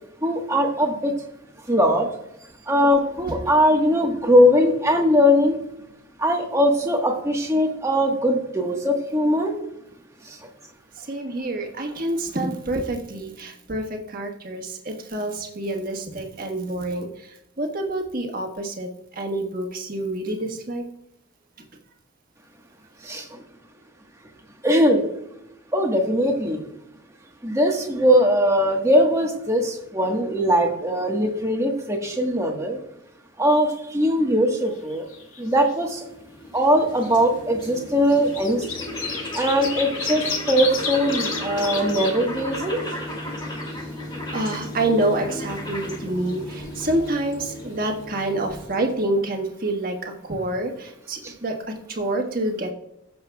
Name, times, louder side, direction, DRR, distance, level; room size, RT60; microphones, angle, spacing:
voice 1, 0.2-1.1 1.7-2.1 2.7-5.6 6.2-9.5 23.0-23.2 24.6-25.0 25.7-26.6 27.4-32.8 33.4-35.0 35.4-36.0 36.5-38.6 39.3-42.8 51.2-51.3, equal, 15° right, 1 dB, 1.3 m, -20 dB
voice 2, 10.9-20.8 44.3-52.7, right 1 dB, 45° right, 3 dB, 1.4 m, -27 dB
sound 1, 34.6-35.4 35.6-35.7 36.9-37.0 37.9-42.1 42.6-42.7 42.9-44.0 47.9-48.0 48.2-48.3, left 6 dB, 80° left, 2.0 m, -31 dB
sound 2, 35.7-49.2, left 1 dB, 20° left, 2.5 m, -34 dB
16.0 x 6.8 x 2.3 m, 0.84 s
head